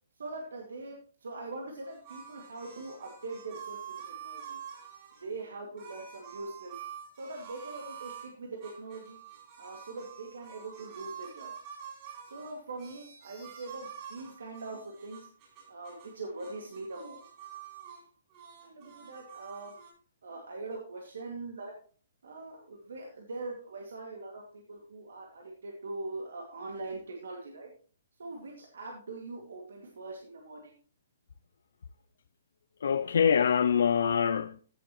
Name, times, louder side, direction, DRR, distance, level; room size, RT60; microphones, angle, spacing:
voice 1, 0.2-0.9 1.2-3.8 4.1-4.6 5.2-6.8 7.1-9.2 9.6-11.5 12.3-15.3 15.7-17.2 18.6-19.7 20.2-21.7 22.2-27.7 28.2-30.7, right 3 dB, 85° right, 2.2 m, -42 dB
sound 1, 1.8-5.2 5.8-8.3 8.6-16.1 16.4-18.0 18.3-19.9, right 8 dB, 30° right, 5.7 m, -47 dB
voice 2, 32.8-34.6, left 7 dB, 75° left, 0.5 m, -25 dB
15.0 x 7.5 x 3.1 m
hypercardioid pair, 160°, 0 cm